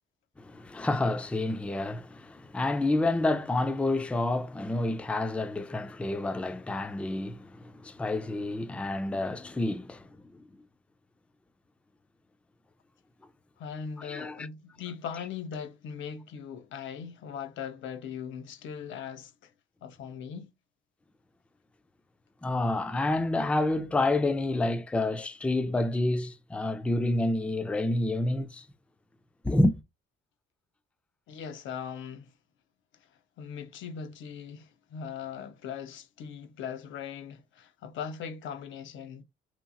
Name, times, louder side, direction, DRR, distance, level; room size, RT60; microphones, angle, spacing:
voice 1, 0.4-10.4 14.0-14.5 22.4-28.7 29.4-29.7, left 2 dB, 5° left, 0.3 m, -29 dB
voice 2, 13.6-19.5 19.8-20.5 31.3-32.3 33.4-39.2, left 7 dB, 75° left, 0.5 m, -40 dB
2.9 x 2.3 x 2.5 m
cardioid pair, 90°, 20 cm